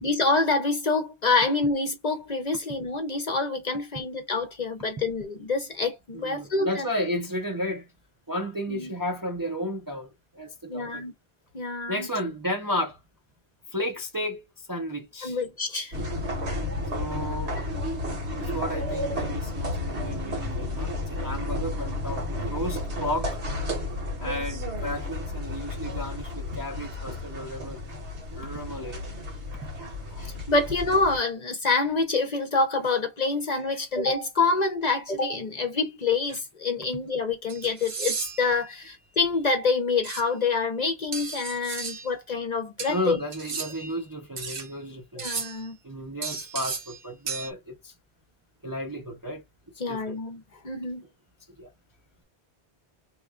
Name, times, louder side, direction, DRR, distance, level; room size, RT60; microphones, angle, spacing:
voice 1, 0.0-6.9 8.7-8.9 10.7-11.1 11.5-12.1 15.2-16.0 30.1-43.2 45.2-45.8 49.8-51.0, left 3 dB, 45° left, 0.7 m, -27 dB
voice 2, 6.2-7.9 8.3-11.0 11.9-13.0 13.7-15.4 16.9-17.6 18.4-23.4 24.2-27.8 28.3-29.0 42.9-45.3 45.8-47.9 48.6-49.4 49.9-50.1 51.6-51.7, equal, 25° right, 0.5 m, -33 dB
sound 1, 15.9-31.2, left 2 dB, 80° right, 1.6 m, -32 dB
sound 2, 36.3-36.4 37.5-38.5 40.0-40.2 41.1-42.1 42.8-43.9 44.4-44.7 45.2-45.7 46.2-47.0 47.3-47.5, right 5 dB, 55° right, 0.9 m, -34 dB
3.0 x 2.3 x 3.6 m
omnidirectional pair, 1.1 m